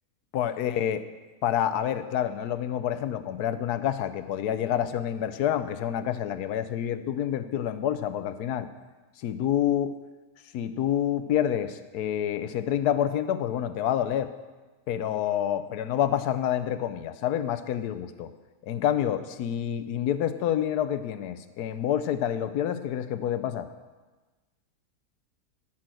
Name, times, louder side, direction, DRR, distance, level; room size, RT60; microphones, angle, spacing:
voice 1, 0.3-1.0 1.4-8.7 9.2-10.0 10.5-14.3 14.9-18.3 18.6-23.7, left 10 dB, 85° left, 11 dB, 1.2 m, -28 dB
13.0 x 6.2 x 7.6 m, 1.3 s
omnidirectional pair, 1.6 m